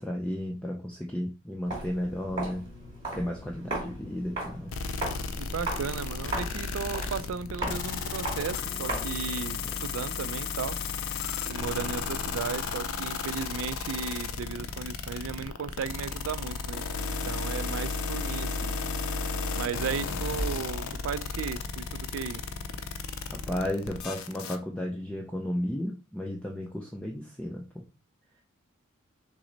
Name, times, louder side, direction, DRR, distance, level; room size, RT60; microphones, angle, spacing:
voice 1, 0.0-2.7 3.1-4.7 9.6-9.8 23.3-27.8, left 1 dB, 5° left, 0.4 m, -33 dB
Walk footsteps, 1.6-9.3, right 2 dB, 20° right, 2.5 m, -37 dB
sound 1, 4.7-24.6, left 5 dB, 70° left, 0.5 m, -33 dB
voice 2, 5.4-10.8 11.5-18.8 19.5-22.4, right 6 dB, 65° right, 0.3 m, -35 dB
Thunder / Rain, 17.9-24.2, equal, 35° left, 0.9 m, -42 dB
6.0 x 2.0 x 3.9 m
head